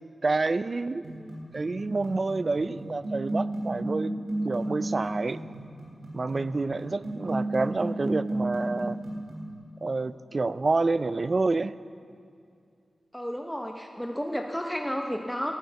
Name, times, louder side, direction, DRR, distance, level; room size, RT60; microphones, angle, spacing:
voice 1, 0.2-1.1 1.5-4.1 4.4-5.4 6.1-9.0 9.8-11.8, right 3 dB, 45° right, 16 dB, 0.4 m, -28 dB
sound 1, 1.0-9.5, right 1 dB, 80° right, 3.0 m, -34 dB
voice 2, 1.1-1.4 13.1-15.5, equal, 5° left, 3 dB, 0.7 m, -32 dB
12.0 x 8.5 x 8.0 m, 2.4 s
cardioid pair, 65°, 0 cm